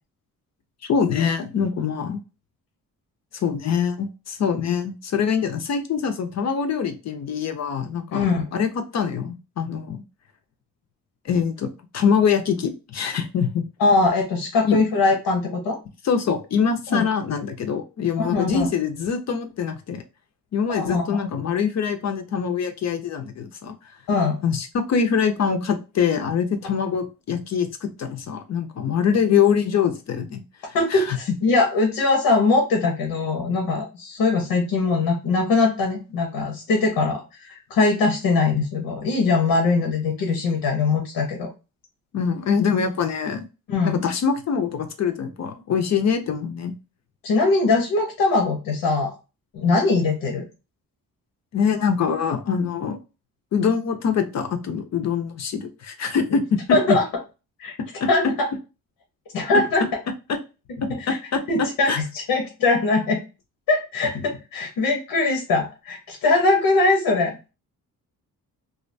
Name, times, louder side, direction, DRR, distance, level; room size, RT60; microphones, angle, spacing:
voice 1, 0.9-2.2 3.3-10.0 11.2-13.6 14.6-14.8 16.0-20.0 20.5-24.0 24.4-30.4 30.7-31.2 42.1-43.5 43.8-46.7 51.5-53.0 53.5-57.0 57.8-58.1 60.3-60.4 60.8-62.0, left 6 dB, 50° left, 7 dB, 0.5 m, -24 dB
voice 2, 8.1-8.4 13.8-15.8 16.9-17.1 18.2-18.7 20.7-21.2 24.1-24.4 30.7-41.5 43.7-44.0 47.2-49.1 49.5-50.4 56.7-57.0 57.6-57.7 58.1-58.5 59.3-59.9 60.9-61.2 61.5-63.2 63.7-67.4, left 3 dB, 90° left, 3 dB, 0.7 m, -21 dB
2.4 x 2.2 x 2.5 m, 0.30 s
cardioid pair, 80°, 35 cm